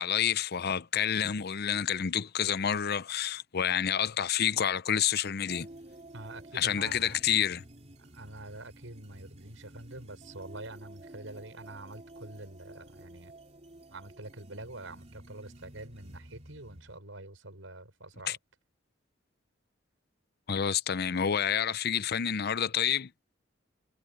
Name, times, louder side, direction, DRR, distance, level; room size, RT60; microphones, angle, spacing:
voice 1, 0.0-5.7 6.5-7.6 18.3-18.4 20.5-23.1, left 8 dB, 55° left, 0.6 m, -29 dB
sound 1, 5.5-17.0, right 1 dB, 35° right, 3.6 m, -51 dB
voice 2, 6.1-7.2 8.1-13.3 13.9-18.4, right 2 dB, 85° right, 5.9 m, -46 dB
head